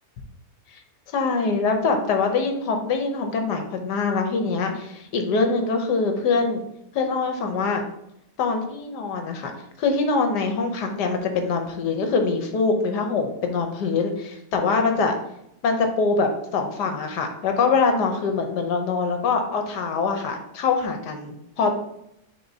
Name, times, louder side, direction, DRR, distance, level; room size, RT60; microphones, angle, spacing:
voice 1, 1.1-6.6 6.9-7.8 8.4-9.5 9.8-15.2 15.6-21.7, left 4 dB, 70° left, 5 dB, 1.4 m, -24 dB
9.8 x 3.7 x 2.7 m, 0.79 s
omnidirectional pair, 1.9 m